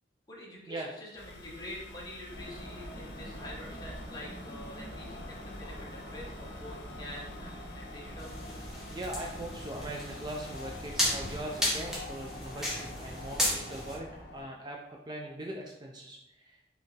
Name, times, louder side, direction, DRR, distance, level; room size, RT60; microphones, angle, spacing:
voice 1, 0.3-8.3, left 1 dB, 20° left, -4 dB, 1.1 m, -46 dB
sound 1, 1.2-11.9, equal, 85° left, 0.7 m, -49 dB
sound 2, 2.3-14.4, left 1 dB, 50° left, 1.0 m, -44 dB
sound 3, 8.2-14.0, left 1 dB, 5° right, 1.0 m, -35 dB
voice 2, 8.9-16.6, right 1 dB, 25° right, 0 dB, 0.4 m, -41 dB
4.4 x 3.4 x 3.3 m, 0.85 s
head